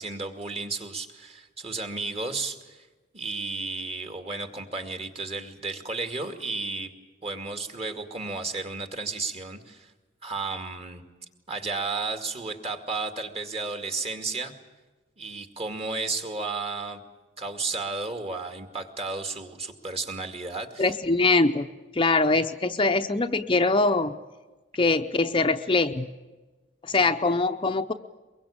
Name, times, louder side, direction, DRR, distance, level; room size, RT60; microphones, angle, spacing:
voice 1, 0.0-2.9 3.1-6.9 7.2-9.9 10.2-11.0 11.5-14.5 15.2-17.0 17.4-20.9, right 3 dB, 35° right, 6 dB, 2.3 m, -33 dB
voice 2, 20.8-21.7 21.9-24.1 24.7-26.1 26.8-27.9, left 3 dB, 25° left, 7 dB, 0.7 m, -23 dB
23.5 x 22.5 x 8.7 m, 1.2 s
head